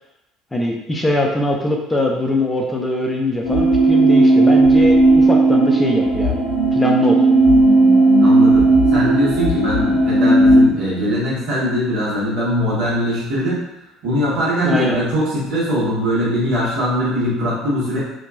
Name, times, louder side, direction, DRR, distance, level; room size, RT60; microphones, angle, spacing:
voice 1, 0.5-6.4 6.7-7.2 14.6-15.0, left 1 dB, 10° left, 0 dB, 0.4 m, -21 dB
sound 1, 3.4-10.6, right 2 dB, 75° left, 0.6 m, -14 dB
voice 2, 8.2-8.6 8.9-13.6 14.0-18.0, equal, 55° right, -7 dB, 1.1 m, -21 dB
2.8 x 2.2 x 2.3 m, 0.88 s
figure-of-eight pair, 60°, 0 cm